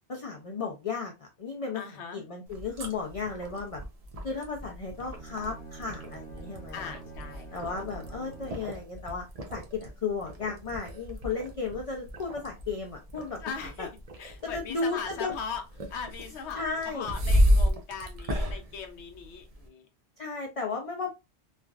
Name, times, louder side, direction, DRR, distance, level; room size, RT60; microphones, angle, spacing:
voice 1, 0.1-3.8 4.2-6.9 7.5-9.2 9.5-13.9 14.4-15.3 16.5-17.1 20.2-21.1, left 4 dB, 50° left, 1 dB, 0.4 m, -34 dB
voice 2, 1.7-2.2 6.7-7.7 13.4-13.9 14.2-15.6 15.9-19.9, left 6 dB, 75° left, 4 dB, 1.0 m, -39 dB
sound 1, 2.5-19.7, equal, 45° right, 0.5 m, -33 dB
Bowed string instrument, 4.9-8.8, right 4 dB, 65° right, 1.5 m, -47 dB
3.1 x 2.4 x 2.3 m, 0.25 s
omnidirectional pair, 1.2 m